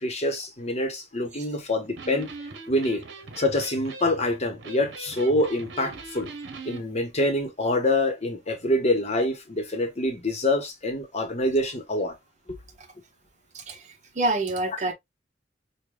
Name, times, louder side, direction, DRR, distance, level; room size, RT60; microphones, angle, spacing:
voice 1, 0.0-2.3 2.7-3.0 3.4-6.3 6.7-12.1 12.5-12.6, left 1 dB, 35° left, 0.9 m, -26 dB
Electric guitar, 1.8-6.8, right 3 dB, 75° right, 0.8 m, -41 dB
voice 2, 14.1-14.9, right 2 dB, 40° right, 0.8 m, -27 dB
5.0 x 2.2 x 2.2 m
head